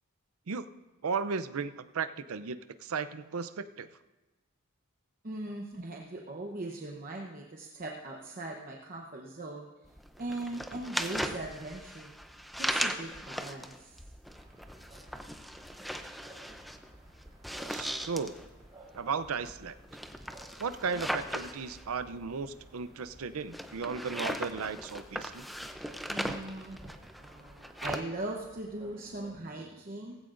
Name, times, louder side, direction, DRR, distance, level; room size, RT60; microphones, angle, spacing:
voice 1, 1.0-3.9 17.7-18.3 18.9-19.8 20.6-25.4, right 5 dB, 85° right, 13 dB, 0.6 m, -35 dB
voice 2, 5.2-9.7 10.2-12.1 12.6-14.0 26.1-30.2, right 2 dB, 40° right, 0 dB, 0.9 m, -40 dB
sound 1, 9.9-28.0, equal, ahead, 0.5 m, -38 dB
sound 2, 14.2-29.3, right 1 dB, 20° right, 3.6 m, -57 dB
18.0 x 15.5 x 2.5 m, 1.1 s
head